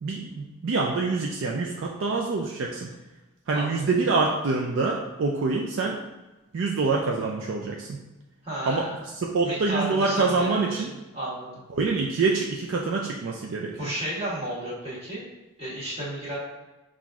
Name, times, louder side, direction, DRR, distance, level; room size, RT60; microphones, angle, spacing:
voice 1, 0.0-2.9 3.5-6.0 6.5-8.0 8.7-8.9 9.1-10.9 11.7-13.9, right 3 dB, 65° right, -1 dB, 0.4 m, -26 dB
voice 2, 3.5-3.8 8.4-9.0 9.4-10.8 11.1-11.5 13.8-15.3 15.6-16.4, right 1 dB, 30° right, -9 dB, 1.4 m, -32 dB
5.6 x 2.5 x 2.3 m, 1.1 s
head